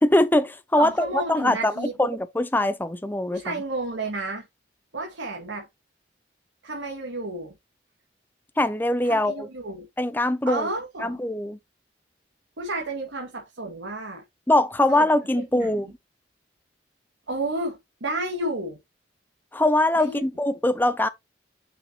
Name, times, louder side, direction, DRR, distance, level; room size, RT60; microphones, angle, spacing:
voice 1, 0.0-3.4 8.6-9.5 10.0-10.7 11.0-11.6 14.5-15.9 19.5-21.1, left 1 dB, 10° left, 0.5 m, -22 dB
voice 2, 0.7-1.9 3.3-4.5 4.9-5.7 6.6-7.5 9.0-9.9 10.5-11.2 12.6-14.2 14.9-15.1 15.3-15.7 17.3-18.8 20.0-20.2, right 2 dB, 90° right, 2.0 m, -31 dB
6.3 x 6.2 x 2.9 m
head